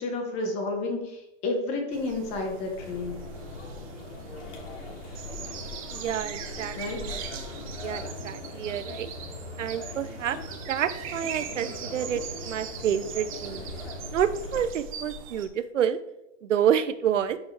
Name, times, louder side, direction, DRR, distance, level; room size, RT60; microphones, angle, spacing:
voice 1, 0.0-3.2 6.8-7.0, left 2 dB, 15° left, 3 dB, 1.2 m, -31 dB
sound 1, 1.9-15.5, right 5 dB, 30° right, 0.9 m, -40 dB
sound 2, 2.8-14.7, left 2 dB, 80° left, 3.3 m, -41 dB
voice 2, 5.9-7.2 7.8-9.1 9.6-10.4 10.7-13.7 14.1-16.0 16.4-17.4, right 9 dB, 90° right, 13 dB, 0.8 m, -28 dB
12.5 x 6.8 x 3.4 m, 0.89 s
hypercardioid pair, 170°, 36 cm